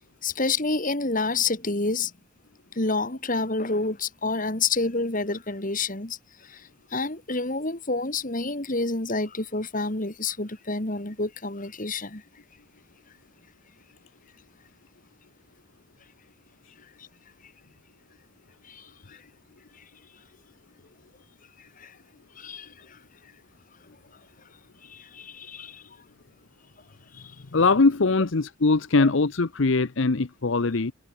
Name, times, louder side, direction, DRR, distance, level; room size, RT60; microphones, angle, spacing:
voice 1, 0.2-2.1 2.7-12.2 17.0-17.1 18.6-19.2 21.8-22.0 22.4-23.0 24.8-25.8 27.1-27.2 29.0-29.1, left 3 dB, 40° left, 2.4 m, -29 dB
voice 2, 27.5-30.9, left 3 dB, 60° left, 0.8 m, -21 dB
head